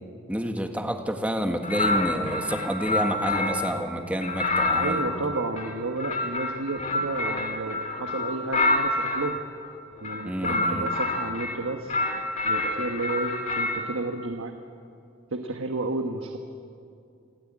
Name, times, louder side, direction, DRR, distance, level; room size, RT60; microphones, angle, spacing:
voice 1, 0.3-5.0 10.2-10.9, equal, 5° right, 4 dB, 1.6 m, -29 dB
sound 1, 1.6-3.8 4.2-9.3 10.0-11.6 11.9-13.9, left 2 dB, 40° left, 2.8 m, -27 dB
voice 2, 4.7-9.4 10.0-12.0 12.4-14.6 15.3-16.4, right 2 dB, 85° right, 5 dB, 1.3 m, -32 dB
26.5 x 16.5 x 8.8 m, 2.5 s
head